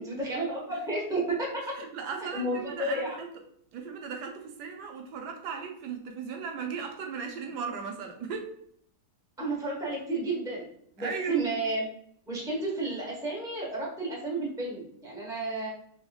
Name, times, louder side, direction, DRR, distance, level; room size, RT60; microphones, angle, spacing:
voice 1, 0.0-1.6 2.3-3.2 9.4-10.7 11.0-11.9 12.3-15.7, right 2 dB, 5° right, -4 dB, 0.7 m, -31 dB
voice 2, 1.7-3.3 3.7-8.5 11.0-11.5, right 5 dB, 75° right, 3 dB, 1.2 m, -37 dB
3.7 x 2.8 x 2.3 m, 0.67 s
omnidirectional pair, 1.9 m